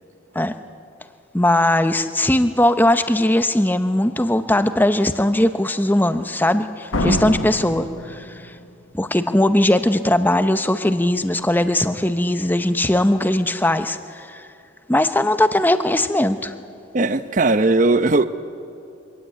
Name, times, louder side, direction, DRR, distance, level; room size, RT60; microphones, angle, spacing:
voice 1, 1.3-8.5 8.9-14.4 14.9-16.5, left 1 dB, 10° left, 10 dB, 0.7 m, -19 dB
Slam, 6.9-8.8, left 2 dB, 75° left, 1.3 m, -27 dB
voice 2, 7.0-7.4 16.9-18.3, right 2 dB, 40° right, 12 dB, 0.7 m, -18 dB
23.5 x 16.0 x 9.5 m, 2.6 s
head